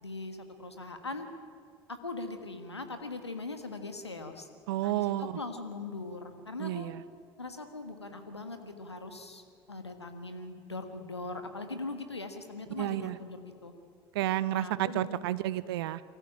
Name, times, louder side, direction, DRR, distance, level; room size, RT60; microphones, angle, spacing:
voice 1, 0.0-1.3 2.0-4.5 4.8-6.9 7.4-13.7 14.5-15.2, left 3 dB, 85° left, 8 dB, 1.6 m, -41 dB
voice 2, 4.7-5.3 6.6-7.0 12.8-13.2 14.1-16.0, right 14 dB, 65° right, 17 dB, 0.6 m, -31 dB
24.0 x 14.5 x 8.9 m, 2.3 s
figure-of-eight pair, 65°, 14 cm